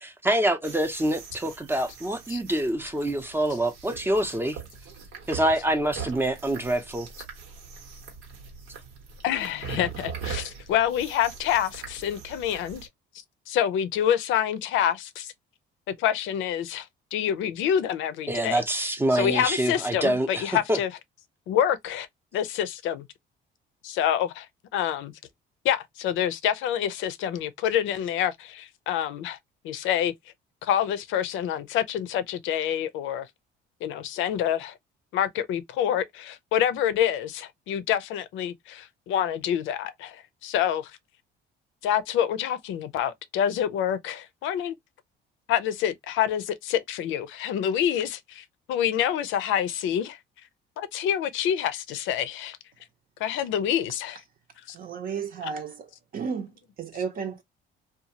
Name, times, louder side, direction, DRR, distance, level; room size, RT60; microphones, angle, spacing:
voice 1, 0.0-4.6 5.3-7.1 18.3-20.8, right 1 dB, 10° right, 0.6 m, -26 dB
sound 1, 0.6-12.9, right 6 dB, 90° right, 1.2 m, -41 dB
voice 2, 9.2-12.8 13.5-15.3 16.0-18.6 19.1-20.9 21.5-22.1 22.3-23.0 23.8-24.5 24.7-25.1 25.6-29.4 29.6-30.1 30.6-33.3 33.8-34.7 35.1-40.9 41.8-44.7 45.5-50.2 50.8-52.6 53.2-54.2 54.7-54.8, left 10 dB, 75° left, 0.5 m, -27 dB
voice 3, 54.7-56.5 56.8-57.4, right 6 dB, 45° right, 0.7 m, -33 dB
2.7 x 2.3 x 2.7 m
cardioid pair, 115°, 20 cm